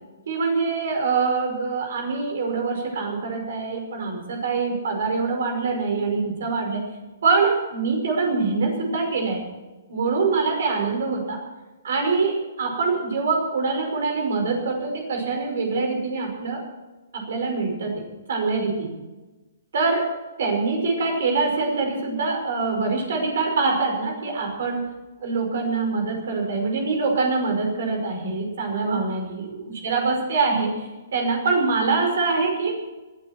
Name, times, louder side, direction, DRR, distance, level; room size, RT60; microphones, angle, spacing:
voice 1, 0.3-6.8 7.2-9.4 9.9-11.4 11.8-16.6 17.1-18.9 19.7-24.9 25.2-29.6 29.8-32.8, right 4 dB, 55° right, 3 dB, 5.5 m, -24 dB
20.5 x 13.5 x 4.5 m, 1.2 s
figure-of-eight pair, 120°, 0 cm